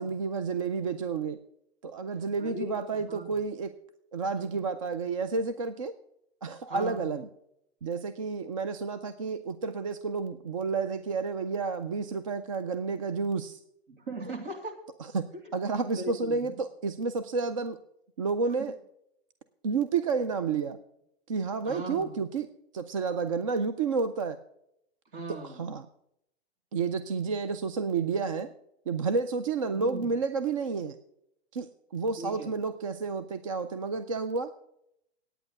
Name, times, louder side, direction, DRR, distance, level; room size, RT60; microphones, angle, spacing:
voice 1, 0.0-1.4 1.8-3.7 4.1-5.9 6.4-7.3 7.8-13.6 15.1-17.8 18.2-18.7 19.6-20.8 21.3-24.4 25.4-25.9 26.7-28.5 28.9-31.0 31.5-34.5, right 4 dB, 35° right, 11 dB, 0.4 m, -30 dB
voice 2, 2.4-2.8 3.1-3.4 4.4-4.6 6.7-7.0 13.9-14.8 15.5-15.6 16.0-16.6 20.4-20.5 21.6-22.2 25.1-25.6 29.7-30.1 32.2-32.6, right 1 dB, 55° right, 3 dB, 3.0 m, -39 dB
9.5 x 9.0 x 6.4 m, 0.77 s
hypercardioid pair, 170°, 32 cm